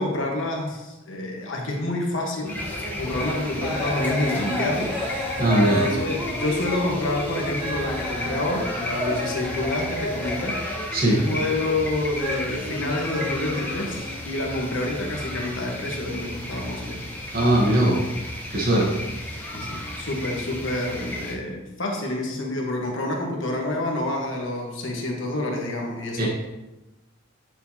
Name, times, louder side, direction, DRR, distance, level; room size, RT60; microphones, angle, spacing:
voice 1, 0.0-4.9 5.6-10.6 11.0-17.0 19.5-26.3, left 1 dB, 70° left, 0 dB, 1.3 m, -28 dB
sound 1, 2.4-21.3, left 1 dB, 10° left, 0.8 m, -33 dB
sound 2, 2.4-14.2, left 1 dB, 5° right, 1.3 m, -32 dB
voice 2, 5.4-5.8 10.9-11.2 17.3-18.0 18.5-19.0 26.2-26.3, right 1 dB, 45° right, -3 dB, 1.1 m, -20 dB
8.8 x 4.5 x 2.8 m, 1.1 s
head